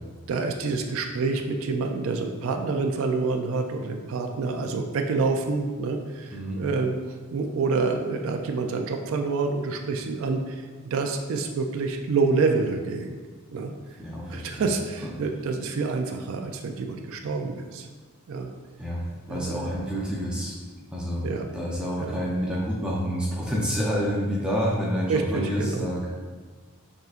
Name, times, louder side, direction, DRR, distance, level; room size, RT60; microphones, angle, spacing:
voice 1, 0.3-13.1 13.5-13.7 14.3-17.9 18.3-18.5 19.3-19.6 21.2-21.5 22.0-22.2 25.1-25.9, right 4 dB, 65° right, 4 dB, 0.3 m, -27 dB
voice 2, 6.3-6.6 14.0-14.6 18.8-19.0 19.3-20.5 20.9-21.2 21.5-26.1, equal, 5° right, -5 dB, 0.5 m, -28 dB
5.5 x 3.6 x 2.4 m, 1.4 s
head